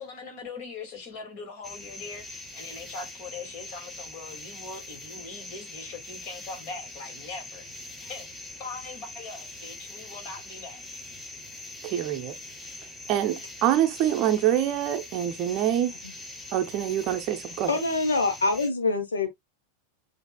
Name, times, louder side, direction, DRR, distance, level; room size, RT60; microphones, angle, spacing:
voice 1, 0.0-8.3 8.6-11.0, left 4 dB, 45° left, 2.3 m, -41 dB
sound 1, 1.6-18.7, left 2 dB, 5° left, 4.1 m, -42 dB
voice 2, 11.8-12.4 13.1-15.9 16.5-17.7, right 11 dB, 40° right, 0.7 m, -25 dB
voice 3, 17.7-19.3, left 3 dB, 70° left, 1.2 m, -25 dB
8.0 x 2.8 x 2.3 m
figure-of-eight pair, 90°, 0 cm